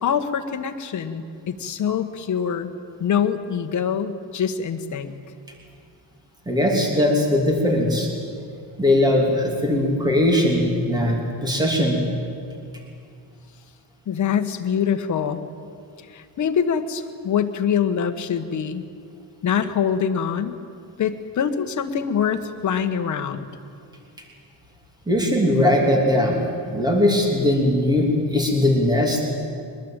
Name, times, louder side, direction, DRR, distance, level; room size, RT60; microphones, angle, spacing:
voice 1, 0.0-2.7 3.0-5.1 14.1-15.4 16.1-18.8 19.4-20.6 21.0-23.4, left 7 dB, 45° left, 6 dB, 1.4 m, -24 dB
voice 2, 6.5-8.1 8.8-12.0 25.1-26.4 26.7-29.3, left 1 dB, 10° right, 1 dB, 3.0 m, -20 dB
23.0 x 21.0 x 8.9 m, 2.4 s
cardioid pair, 175°, 43 cm